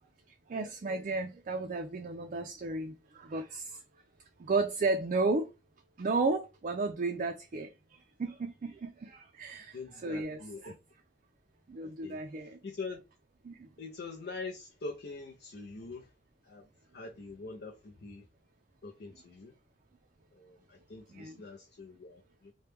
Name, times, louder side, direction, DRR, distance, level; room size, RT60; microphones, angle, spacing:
voice 1, 0.5-3.8 4.4-5.5 6.0-7.7 8.2-10.7 11.7-12.6 13.4-13.7 21.1-21.5, right 3 dB, 45° right, 0.4 m, -33 dB
voice 2, 9.7-10.8 11.8-12.2 12.6-13.0 13.8-16.1 16.5-16.6 16.9-18.2 18.8-19.5 20.3-22.5, left 3 dB, 65° left, 0.5 m, -44 dB
3.0 x 2.2 x 3.3 m
head